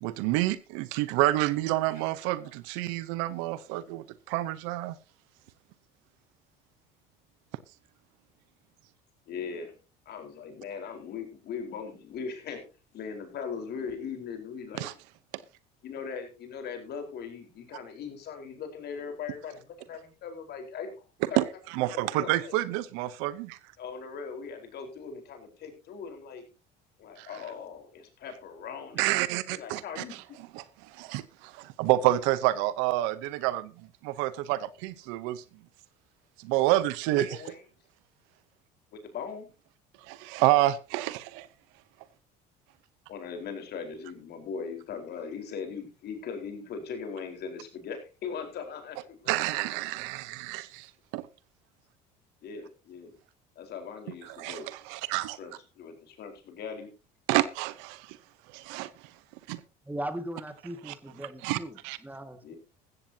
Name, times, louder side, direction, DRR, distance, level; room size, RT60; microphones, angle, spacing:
voice 1, 0.0-4.9 14.8-14.9 21.4-21.5 21.7-23.6 27.2-27.3 29.0-30.0 30.5-30.6 30.9-33.7 34.0-35.4 36.4-37.3 40.1-41.5 49.3-50.9 51.1-51.2 54.3-55.4 57.3-58.2 58.5-58.9 59.5-59.6 60.8-60.9 61.4-62.0, right 16 dB, 80° right, 16 dB, 0.9 m, -28 dB
voice 2, 2.2-2.5 9.3-9.7 10.1-12.6 12.9-14.9 15.8-21.1 21.9-22.5 23.8-26.4 27.0-29.2 29.5-30.4 37.3-37.6 38.9-39.5 43.1-49.3 52.4-53.1 53.6-54.7 55.4-56.9 62.4-62.6, left 6 dB, 60° left, 5 dB, 4.4 m, -39 dB
voice 3, 59.9-62.5, right 1 dB, 10° right, 9 dB, 1.9 m, -38 dB
15.0 x 14.5 x 2.8 m, 0.31 s
supercardioid pair, 85°, 19 cm